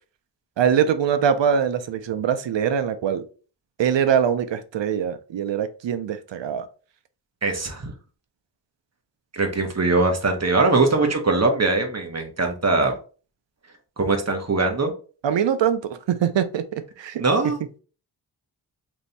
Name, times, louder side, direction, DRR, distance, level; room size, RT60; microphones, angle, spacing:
voice 1, 0.6-3.3 3.8-6.7 15.2-17.2, right 8 dB, 75° right, 0.6 m, -23 dB
voice 2, 7.4-7.9 9.3-13.0 14.0-14.9 17.2-17.6, right 3 dB, 35° right, 1.0 m, -21 dB
3.1 x 2.8 x 4.0 m
wide cardioid pair, 60°, 44 cm